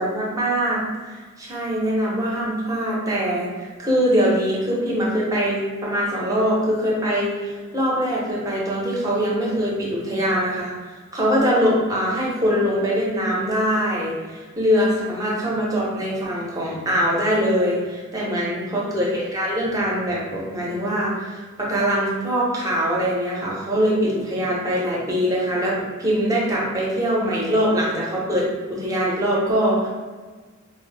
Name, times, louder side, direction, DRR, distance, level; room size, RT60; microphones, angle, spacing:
voice 1, 0.0-10.7 11.1-29.9, equal, 15° right, -5 dB, 0.8 m, -23 dB
4.0 x 2.0 x 3.3 m, 1.4 s
head